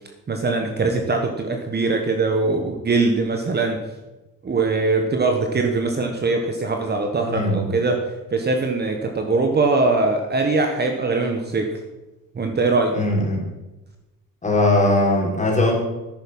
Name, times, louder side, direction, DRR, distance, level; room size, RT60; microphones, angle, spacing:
voice 1, 0.3-3.8 4.4-8.0 8.3-11.8 12.3-13.0, right 3 dB, 30° right, 4 dB, 1.3 m, -21 dB
voice 2, 7.2-7.7 12.9-13.4 14.4-15.8, left 1 dB, 20° left, -1 dB, 3.8 m, -19 dB
11.0 x 9.2 x 5.5 m, 1.1 s
cardioid pair, 120°, 33 cm